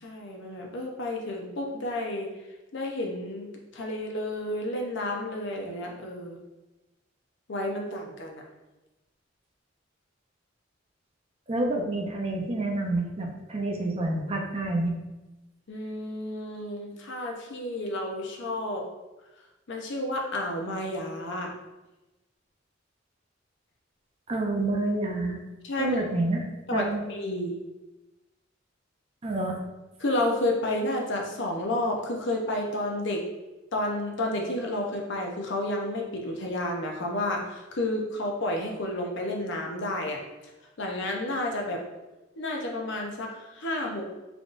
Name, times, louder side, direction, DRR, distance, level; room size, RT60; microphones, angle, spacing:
voice 1, 0.0-2.3 2.7-6.4 7.5-8.4 15.7-18.9 19.7-21.5 25.6-26.0 26.7-27.6 30.0-33.2 33.7-40.2 40.8-41.8 42.4-44.1, left 1 dB, 65° left, 1 dB, 0.7 m, -31 dB
voice 2, 11.5-15.0 24.3-25.4 25.8-26.4 26.7-27.0 29.2-29.6, right 2 dB, 30° right, 1 dB, 0.5 m, -28 dB
3.8 x 3.4 x 2.5 m, 1.0 s
head